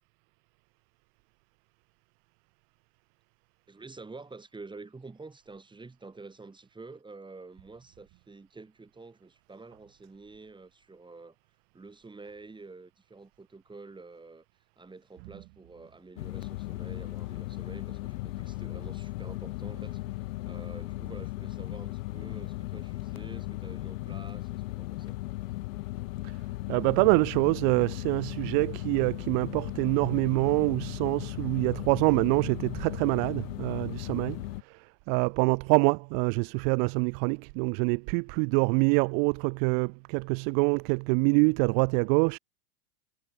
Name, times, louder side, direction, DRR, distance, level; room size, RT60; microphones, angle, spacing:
voice 1, 3.7-11.4 11.7-25.2, right 3 dB, 10° right, 7.9 m, -48 dB
sound 1, 16.2-34.6, left 19 dB, 70° left, 3.3 m, -37 dB
voice 2, 26.7-42.4, right 40 dB or more, 45° right, 0.7 m, -26 dB
supercardioid pair, 120°, 42 cm